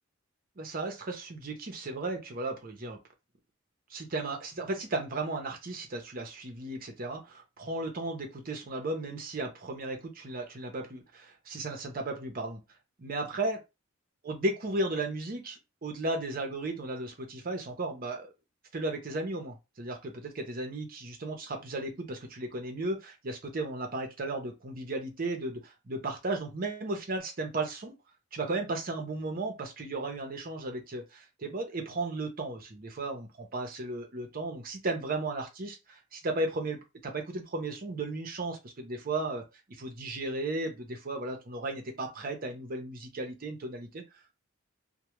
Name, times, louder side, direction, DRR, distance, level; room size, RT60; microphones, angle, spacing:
voice 1, 0.6-3.0 3.9-12.6 13.0-13.6 14.2-18.3 18.7-27.9 28.3-39.4 39.8-44.0, right 2 dB, 45° right, 3 dB, 0.7 m, -35 dB
2.3 x 2.1 x 3.0 m, 0.24 s
head